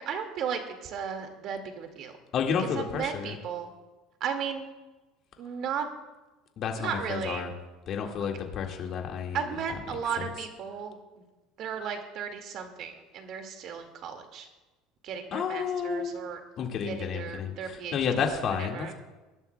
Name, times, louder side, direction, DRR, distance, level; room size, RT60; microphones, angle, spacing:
voice 1, 0.0-2.2 2.6-3.7 4.2-4.7 5.4-5.9 6.8-7.5 9.3-11.2 11.6-14.5 15.0-16.4 16.8-18.0 18.3-18.9, right 7 dB, 55° right, 5 dB, 1.9 m, -35 dB
voice 2, 2.3-3.3 6.6-7.5 7.9-9.4 10.2-10.3 15.3-16.2 16.6-18.9, left 6 dB, 45° left, 2 dB, 1.8 m, -31 dB
23.0 x 11.5 x 2.2 m, 1.2 s
supercardioid pair, 120°, 0 cm